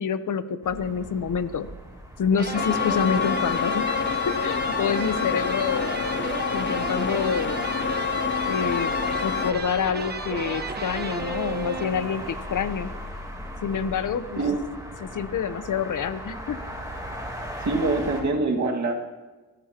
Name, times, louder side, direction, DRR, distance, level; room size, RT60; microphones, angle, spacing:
voice 1, 0.0-1.7 2.2-3.9 4.3-6.2 6.5-7.6 8.5-8.9 9.2-12.9 13.6-14.4 15.0-16.6, left 7 dB, 70° left, 11 dB, 0.9 m, -27 dB
sound 1, 0.6-18.2, equal, 10° right, 3.5 m, -39 dB
sound 2, 2.3-12.3, right 3 dB, 30° right, 1.1 m, -34 dB
sound 3, 2.5-9.5, left 6 dB, 35° left, 0.6 m, -27 dB
voice 2, 17.6-19.0, right 3 dB, 60° right, 1 dB, 2.0 m, -24 dB
25.0 x 18.0 x 2.9 m, 1.3 s
wide cardioid pair, 140°, 32 cm